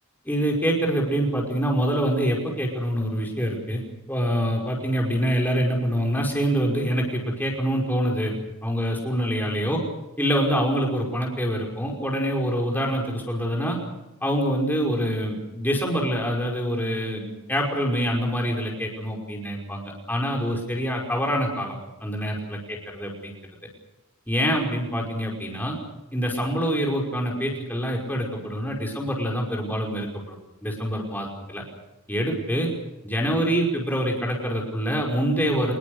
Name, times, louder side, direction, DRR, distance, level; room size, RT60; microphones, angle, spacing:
voice 1, 0.2-3.8 4.1-8.3 8.6-9.8 10.2-13.8 14.2-23.3 24.3-25.8 26.1-30.4 30.6-31.6 32.1-32.7 33.0-35.7, equal, 10° left, -1 dB, 5.4 m, -25 dB
26.5 x 21.5 x 6.5 m, 0.94 s
head